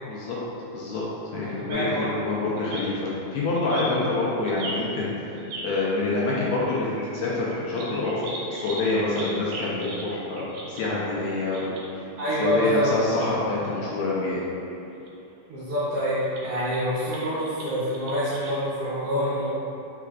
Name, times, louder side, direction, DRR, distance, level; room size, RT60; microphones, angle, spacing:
voice 1, 0.1-0.4 0.7-1.0 1.3-5.3 5.6-8.2 8.5-12.0 12.4-14.5, left 2 dB, 80° left, -6 dB, 1.7 m, -27 dB
voice 2, 1.5-2.1 12.2-13.0 15.5-19.5, equal, 70° right, -11 dB, 1.5 m, -26 dB
summer nigth's bird, 1.7-5.8 6.5-12.7 12.9-13.1 13.5-13.6 15.0-15.1 15.8-18.5, right 1 dB, 85° right, 2.0 m, -39 dB
4.8 x 4.5 x 2.3 m, 2.8 s
omnidirectional pair, 3.5 m